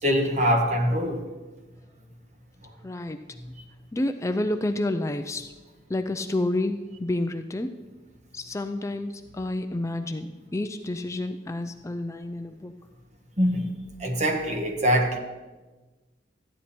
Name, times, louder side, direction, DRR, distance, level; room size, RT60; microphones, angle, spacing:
voice 1, 0.0-1.2 2.6-2.7 13.4-13.7 14.0-15.2, equal, 40° right, 3 dB, 1.5 m, -23 dB
voice 2, 2.8-3.2 3.9-5.5 5.9-7.7 8.3-12.7, left 1 dB, 15° left, 7 dB, 0.4 m, -29 dB
14.0 x 10.0 x 4.3 m, 1.2 s
head